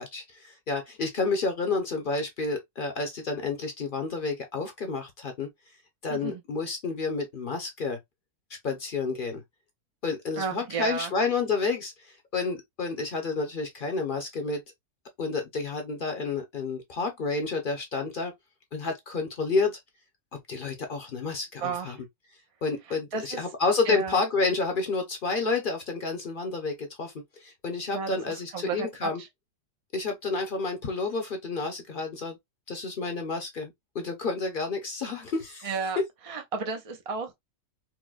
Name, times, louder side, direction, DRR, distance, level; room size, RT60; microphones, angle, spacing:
voice 1, 0.0-5.5 6.0-8.0 8.6-9.4 10.0-11.9 12.3-14.6 15.2-18.3 18.7-19.8 20.5-22.0 22.6-27.1 27.4-29.2 29.9-32.4 32.7-35.7, left 4 dB, 45° left, 0.7 m, -30 dB
voice 2, 6.1-6.4 10.4-11.1 21.6-22.0 23.1-23.5 23.8-24.2 27.9-29.3 35.6-36.0 36.3-37.3, right 5 dB, 55° right, 0.4 m, -33 dB
4.5 x 2.1 x 2.4 m
omnidirectional pair, 1.5 m